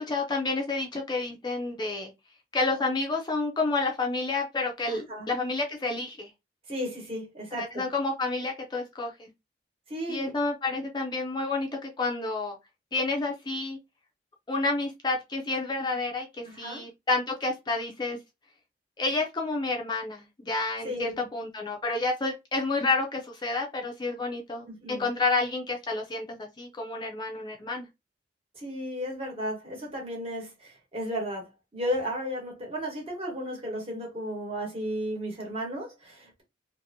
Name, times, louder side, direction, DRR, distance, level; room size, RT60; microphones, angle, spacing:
voice 1, 0.0-2.1 2.5-6.3 7.5-9.3 10.1-12.6 12.9-13.8 14.5-18.2 19.0-27.9, left 3 dB, 25° left, 0.4 m, -30 dB
voice 2, 4.9-5.3 6.7-7.9 9.9-10.3 16.4-16.8 20.8-21.1 24.6-25.1 28.5-36.4, equal, 35° right, 1.1 m, -34 dB
2.8 x 2.5 x 2.6 m
head